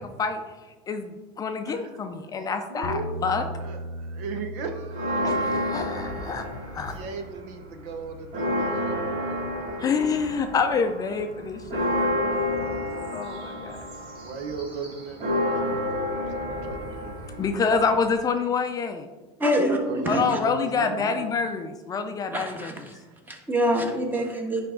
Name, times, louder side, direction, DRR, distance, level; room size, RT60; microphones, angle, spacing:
voice 1, 0.9-3.5 5.2-6.5 6.8-6.9 9.8-12.2 13.1-13.8 17.4-19.1 20.1-22.7, left 5 dB, 25° left, 6 dB, 0.5 m, -27 dB
voice 2, 1.7-2.0 2.7-3.1 3.6-5.5 6.8-9.9 14.2-17.8 19.8-21.3 23.0-23.2, right 4 dB, 65° right, 7 dB, 0.9 m, -38 dB
sound 1, 2.8-9.1, equal, 80° left, 0.6 m, -39 dB
Church bell, 4.9-7.3 7.6-7.7 8.1-18.1, left 1 dB, 45° right, 2.0 m, -30 dB
voice 3, 19.4-19.8 20.0-20.4 22.3-23.0 23.3-24.6, equal, 15° right, 2 dB, 1.3 m, -25 dB
10.0 x 3.5 x 3.8 m, 1.2 s
supercardioid pair, 120°, 14 cm